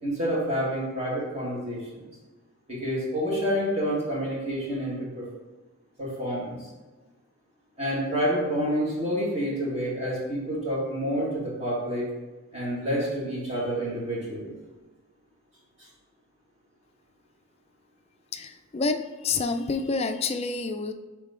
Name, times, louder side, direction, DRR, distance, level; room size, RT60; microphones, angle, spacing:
voice 1, 0.0-2.1 2.7-5.2 6.0-6.6 7.8-12.1 12.5-14.5, equal, 30° right, -5 dB, 1.9 m, -28 dB
voice 2, 18.3-20.9, left 4 dB, 30° left, 7 dB, 0.3 m, -28 dB
8.4 x 3.2 x 3.7 m, 1.2 s
head